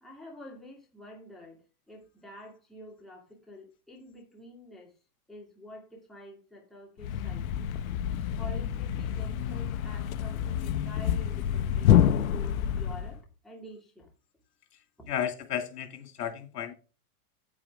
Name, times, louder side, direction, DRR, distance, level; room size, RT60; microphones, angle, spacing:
voice 1, 0.0-1.6 1.9-4.9 5.3-7.7 8.4-14.1, equal, ahead, 2.3 m, -48 dB
Thump thud, 7.0-13.2, left 9 dB, 60° left, 0.9 m, -27 dB
voice 2, 15.1-16.7, left 9 dB, 80° left, 2.5 m, -33 dB
9.0 x 8.7 x 3.6 m
supercardioid pair, 160°, 46 cm